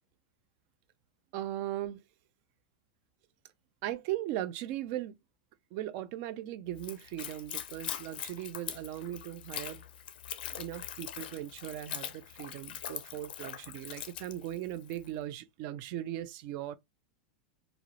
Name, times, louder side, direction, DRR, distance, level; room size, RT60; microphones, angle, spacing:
voice 1, 1.3-2.0 3.8-5.2 5.7-9.8 10.6-16.8, right 13 dB, 45° right, 0.3 m, -38 dB
Splash splatter / Trickle dribble, 6.7-15.1, left 10 dB, 75° left, 0.4 m, -42 dB
2.3 x 2.0 x 3.0 m
supercardioid pair, 135°, 5 cm